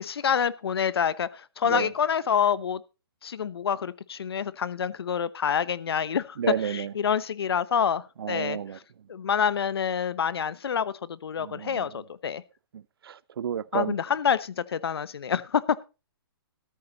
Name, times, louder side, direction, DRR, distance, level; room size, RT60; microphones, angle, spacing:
voice 1, 0.0-2.8 3.2-6.4 6.6-8.6 9.1-12.4 13.7-15.8, left 7 dB, 75° left, 0.9 m, -27 dB
voice 2, 6.4-6.9 8.2-8.8 11.4-12.0 12.7-14.0, right 8 dB, 70° right, 0.7 m, -31 dB
13.5 x 12.0 x 4.0 m
hypercardioid pair, 160°, 13 cm